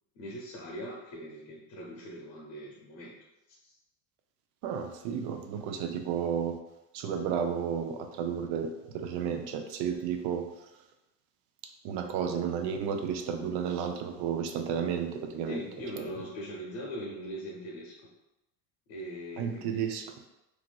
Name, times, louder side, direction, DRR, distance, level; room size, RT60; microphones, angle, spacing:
voice 1, 0.1-3.1 3.6-3.7 15.5-18.1 18.9-19.9, equal, 65° left, -3 dB, 0.8 m, -41 dB
voice 2, 4.6-6.6 6.9-10.5 11.8-15.6 16.0-16.1 19.4-20.1, right 7 dB, 55° right, 5 dB, 0.5 m, -32 dB
3.0 x 2.4 x 2.2 m, 0.94 s
supercardioid pair, 95°, 49 cm